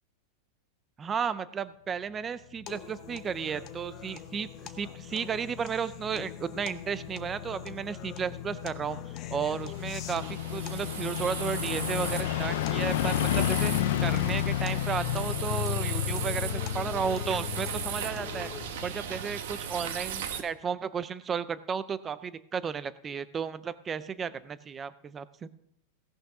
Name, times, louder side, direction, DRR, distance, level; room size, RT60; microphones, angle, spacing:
voice 1, 1.0-9.0 9.3-13.7 14.0-18.5 18.8-25.5, right 6 dB, 15° right, 15 dB, 0.4 m, -33 dB
sound 1, 2.7-19.3 19.6-19.7, left 12 dB, 55° left, 0.5 m, -33 dB
sound 2, 2.7-18.7, left 9 dB, 25° left, 0.8 m, -46 dB
sound 3, 9.5-20.4, right 8 dB, 65° right, 1.4 m, -38 dB
17.0 x 6.4 x 5.9 m, 0.74 s
supercardioid pair, 180°, 0 cm